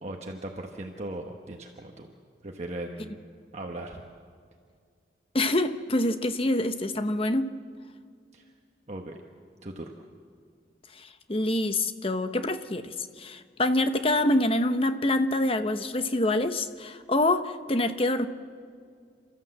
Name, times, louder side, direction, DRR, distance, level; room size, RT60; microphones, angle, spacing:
voice 1, 0.0-2.1 2.4-3.2 3.5-4.0 8.3-8.4 8.9-9.2 9.6-9.9, right 1 dB, 35° right, 2 dB, 1.2 m, -38 dB
voice 2, 5.3-7.5 11.0-18.3, left 1 dB, 30° left, 9 dB, 0.9 m, -26 dB
29.0 x 13.5 x 7.6 m, 2.2 s
head